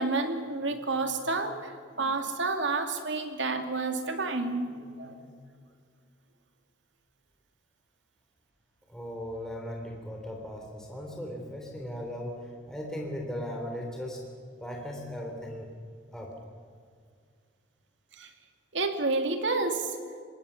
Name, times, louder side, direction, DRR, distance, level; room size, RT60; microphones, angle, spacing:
voice 1, 0.0-5.2 18.2-18.3 18.7-20.0, right 3 dB, 75° right, 6 dB, 2.4 m, -30 dB
voice 2, 8.9-14.2 14.6-15.7 16.1-16.3, equal, 5° left, -1 dB, 3.3 m, -37 dB
25.0 x 20.5 x 7.1 m, 2.1 s
head